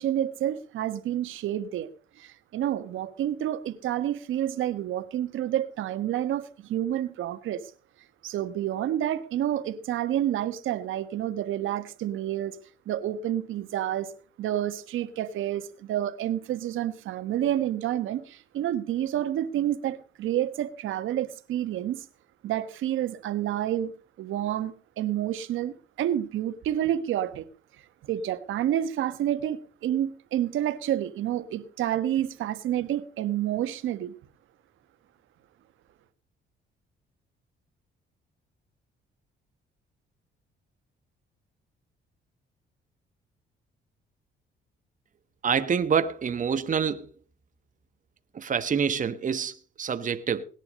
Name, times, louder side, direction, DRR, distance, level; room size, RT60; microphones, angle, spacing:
voice 1, 0.0-1.9 2.2-7.6 8.2-12.6 12.9-14.1 14.4-22.0 22.4-23.9 24.2-27.4 28.1-34.1, right 11 dB, 80° right, 1.4 m, -29 dB
voice 2, 45.4-47.0 48.3-50.4, right 7 dB, 40° right, 1.2 m, -26 dB
18.5 x 10.5 x 5.2 m
cardioid pair, 90°, 20 cm